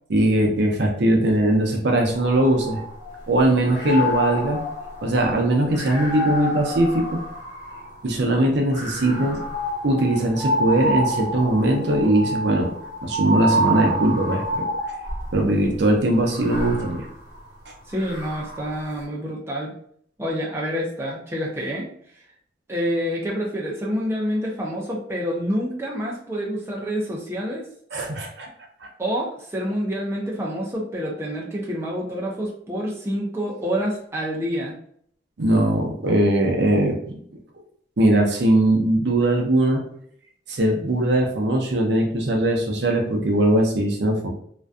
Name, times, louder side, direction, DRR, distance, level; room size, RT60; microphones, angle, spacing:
voice 1, 0.1-2.8 3.3-4.6 5.0-7.2 8.0-9.4 9.8-12.7 13.0-14.7 15.3-17.1 27.9-28.5 35.4-37.0 38.0-39.8 40.5-44.3, right 1 dB, 65° right, 1 dB, 0.5 m, -20 dB
sound 1, 2.1-3.3 3.6-8.0 8.7-15.4 16.2-18.8, equal, 45° left, 1.0 m, -28 dB
voice 2, 17.9-19.7 20.2-21.9 22.7-27.6 29.0-34.8, equal, 15° right, -4 dB, 0.4 m, -27 dB
2.5 x 2.2 x 2.3 m, 0.64 s
head